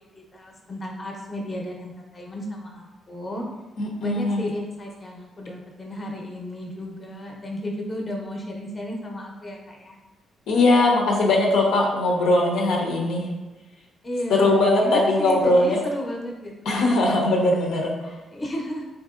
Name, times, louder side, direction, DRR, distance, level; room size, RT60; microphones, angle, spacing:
voice 1, 0.1-3.4 4.0-10.0 14.0-17.0 18.3-18.9, equal, 30° left, 0 dB, 0.6 m, -33 dB
voice 2, 3.8-4.4 10.5-13.3 14.3-15.8 16.7-18.1, left 2 dB, 85° left, 0 dB, 0.6 m, -20 dB
4.1 x 2.7 x 2.4 m, 1.1 s
cardioid pair, 90°, 0 cm